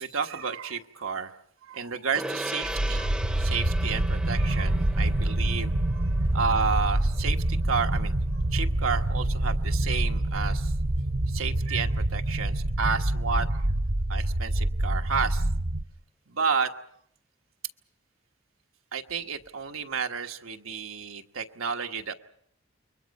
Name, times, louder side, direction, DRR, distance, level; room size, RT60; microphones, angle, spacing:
voice 1, 0.0-1.3 1.6-6.0 6.3-8.1 8.5-10.7 11.3-13.7 14.1-15.4 16.3-16.7 18.9-22.1, right 5 dB, 85° right, 5 dB, 1.3 m, -31 dB
Gong, 2.1-11.9, right 1 dB, 5° right, 0.8 m, -40 dB
sound 1, 2.6-15.8, right 1 dB, 45° right, 0.8 m, -26 dB
29.5 x 23.0 x 5.4 m, 0.68 s
head